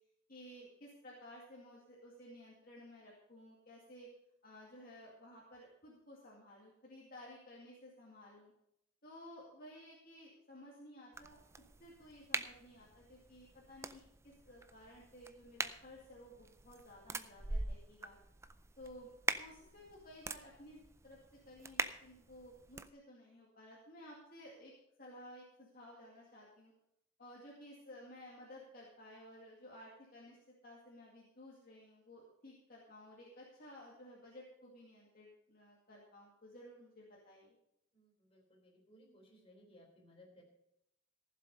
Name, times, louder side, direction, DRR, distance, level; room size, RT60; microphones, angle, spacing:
voice 1, 0.3-4.1 4.4-8.5 9.0-11.4 11.8-18.2 18.8-19.1 19.4-24.7 25.0-26.7 27.2-30.4 30.6-37.5, left 1 dB, 45° left, -4 dB, 2.2 m, -55 dB
sound 1, 11.1-22.9, right 3 dB, 15° right, 0.4 m, -44 dB
voice 2, 37.9-40.4, left 1 dB, 30° left, -1 dB, 3.7 m, -62 dB
15.0 x 7.6 x 5.5 m, 0.79 s
head